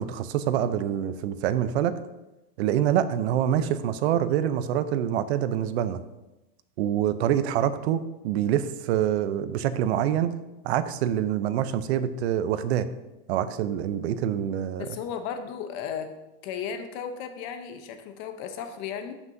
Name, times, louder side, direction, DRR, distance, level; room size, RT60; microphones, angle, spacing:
voice 1, 0.0-2.0 2.6-6.0 6.8-10.3 10.6-12.9 13.3-14.9, right 10 dB, 85° right, 12 dB, 0.7 m, -26 dB
voice 2, 14.8-16.2 16.4-19.1, left 7 dB, 45° left, 8 dB, 0.9 m, -35 dB
13.5 x 6.0 x 2.7 m, 0.99 s
supercardioid pair, 165°, 32 cm